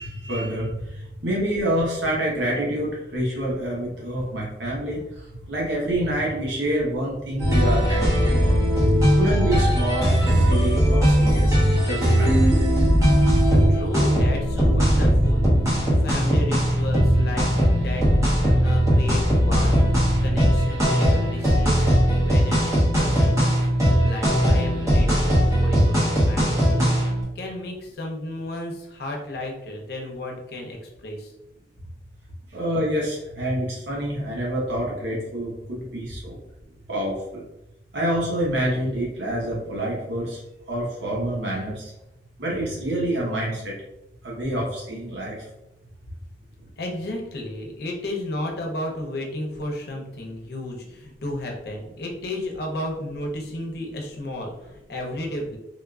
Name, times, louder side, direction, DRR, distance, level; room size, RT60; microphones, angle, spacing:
voice 1, 0.0-8.6 9.2-12.5 32.5-36.4 36.9-37.4 37.9-40.4 40.7-41.9 42.4-43.7 44.2-45.5, right 1 dB, 90° right, -4 dB, 1.0 m, -27 dB
sound 1, 7.4-27.2, equal, 20° right, 1.0 m, -19 dB
voice 2, 13.5-15.5 15.7-19.8 20.2-31.3 46.8-55.6, left 1 dB, 60° left, 1 dB, 0.7 m, -33 dB
3.5 x 2.4 x 2.3 m, 0.90 s
head